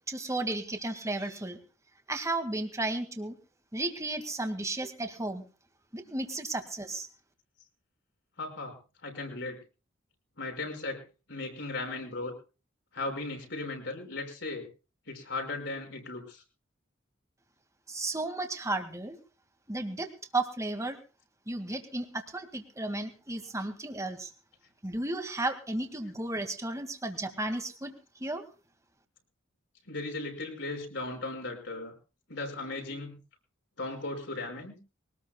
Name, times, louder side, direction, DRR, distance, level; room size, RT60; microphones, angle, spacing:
voice 1, 0.1-1.6 2.1-3.4 3.7-5.4 5.9-7.1 17.9-19.2 19.7-21.0 21.5-24.3 24.8-27.9 28.2-28.4, right 2 dB, 15° right, 6 dB, 2.1 m, -34 dB
voice 2, 8.4-8.8 9.0-9.6 10.4-11.0 11.3-12.3 12.9-14.7 15.1-16.4 29.9-31.9 32.3-33.2 33.8-34.8, left 2 dB, 65° left, 2 dB, 5.6 m, -37 dB
23.0 x 19.0 x 2.3 m, 0.34 s
head